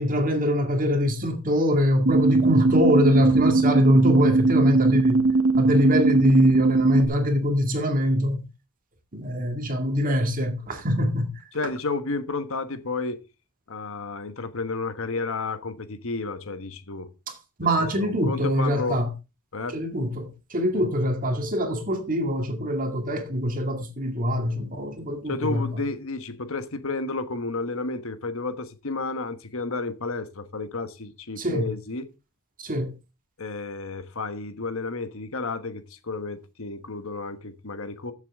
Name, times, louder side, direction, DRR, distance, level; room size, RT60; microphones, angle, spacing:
voice 1, 0.0-5.2 5.6-8.5 9.1-11.3 17.3-17.4 17.6-19.1 19.7-25.6 31.4-31.7 32.6-32.9, equal, 40° right, 2.1 m, -23 dB
sound 1, 2.1-7.1, right 3 dB, 65° right, 1.1 m, -20 dB
voice 2, 11.5-13.2 13.7-17.1 17.8-19.0 19.5-19.8 20.7-20.8 25.2-32.1 33.4-38.1, left 3 dB, 65° left, 1.3 m, -31 dB
14.5 x 7.4 x 3.6 m
head